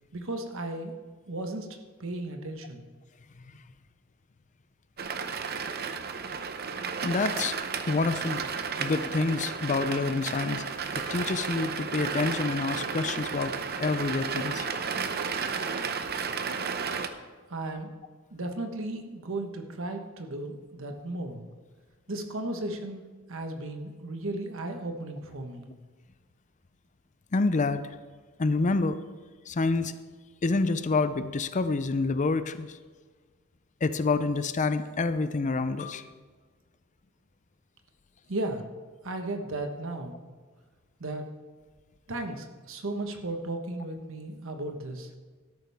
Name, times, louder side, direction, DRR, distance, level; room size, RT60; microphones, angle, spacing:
voice 1, 0.1-0.9 1.3-1.7 2.0-2.8 17.5-17.9 18.3-21.5 22.1-23.0 23.3-25.7 38.3-38.7 39.0-40.2 41.0-41.2 42.1-45.1, right 2 dB, 65° right, 5 dB, 1.3 m, -35 dB
sound 1, 5.0-17.1, right 5 dB, 50° right, 0.7 m, -33 dB
voice 2, 7.0-7.6 7.9-8.4 8.8-10.6 11.1-14.7 27.3-27.9 28.4-29.0 29.5-29.9 30.4-32.8 33.8-36.0, left 3 dB, 35° left, 12 dB, 0.5 m, -27 dB
13.0 x 11.0 x 3.5 m, 1.4 s
head